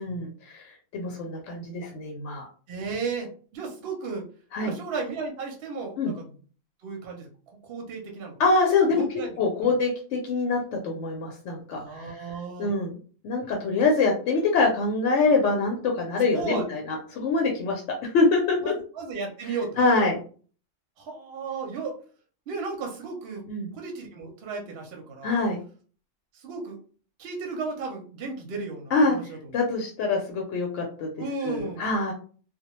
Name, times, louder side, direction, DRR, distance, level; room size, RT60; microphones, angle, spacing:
voice 1, 0.0-2.5 4.5-4.7 6.0-6.1 8.4-9.0 9.4-12.2 12.6-13.0 13.2-18.7 19.5-20.2 23.5-23.7 25.2-25.6 28.9-31.1 31.4-32.1, left 3 dB, 70° left, 0 dB, 0.9 m, -25 dB
voice 2, 2.7-4.2 4.6-6.3 6.8-8.4 8.9-9.7 11.7-12.7 16.3-16.7 18.6-19.7 21.0-22.0 22.5-23.5 23.7-25.3 26.3-26.8 27.2-29.5 31.2-31.9, right 4 dB, 60° right, 2 dB, 0.7 m, -34 dB
2.2 x 2.1 x 2.9 m, 0.41 s
omnidirectional pair, 1.3 m